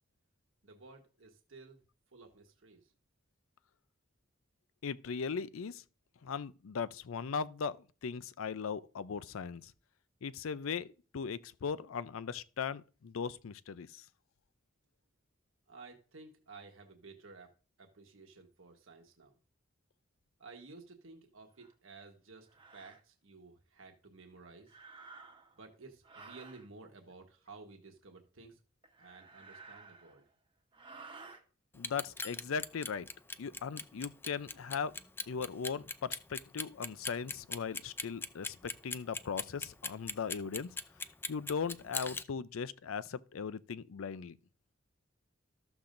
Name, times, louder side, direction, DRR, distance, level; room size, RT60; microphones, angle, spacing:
voice 1, 0.6-1.8 2.1-2.9 15.7-17.5 17.8-19.4 20.4-22.5 22.7-24.8 25.6-28.6 29.0-30.3, right 3 dB, 80° right, 1.3 m, -54 dB
voice 2, 4.8-5.8 6.2-9.7 10.2-14.0 31.7-33.1 33.4-34.9 35.3-40.7 41.3-44.4, left 6 dB, 90° left, 0.5 m, -38 dB
sound 1, 21.6-21.7 22.5-23.0 24.6-25.6 26.0-26.7 28.8-30.3 30.7-31.4, right 4 dB, 25° right, 1.0 m, -53 dB
Clock, 31.7-42.2, left 4 dB, 10° left, 0.3 m, -39 dB
13.5 x 7.0 x 2.6 m
head